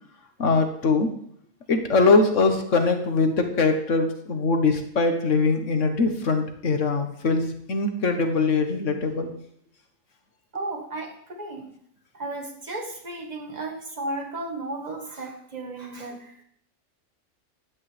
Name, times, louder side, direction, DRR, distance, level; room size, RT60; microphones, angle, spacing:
voice 1, 0.4-1.1 1.7-9.3, left 3 dB, 65° left, 6 dB, 1.6 m, -22 dB
voice 2, 10.5-11.7 12.1-16.4, right 2 dB, 30° right, 2 dB, 1.7 m, -34 dB
15.0 x 11.0 x 3.4 m, 0.68 s
omnidirectional pair, 1.4 m